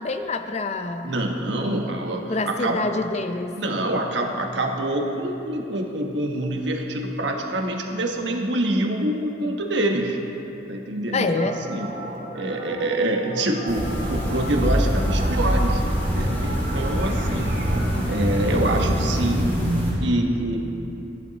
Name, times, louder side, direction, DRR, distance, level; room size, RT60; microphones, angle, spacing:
voice 1, 0.0-1.1 2.3-3.6 11.1-11.6, left 3 dB, 40° left, 8 dB, 0.6 m, -26 dB
voice 2, 1.0-2.8 3.6-10.2 10.7-11.9 12.3-17.6 18.0-19.6 20.0-20.6, right 1 dB, 90° right, 2 dB, 1.2 m, -26 dB
sound 1, 11.3-18.9, right 1 dB, 55° right, 2.7 m, -36 dB
sound 2, 13.7-19.9, equal, 10° left, 2.9 m, -24 dB
14.5 x 10.5 x 4.1 m, 2.9 s
head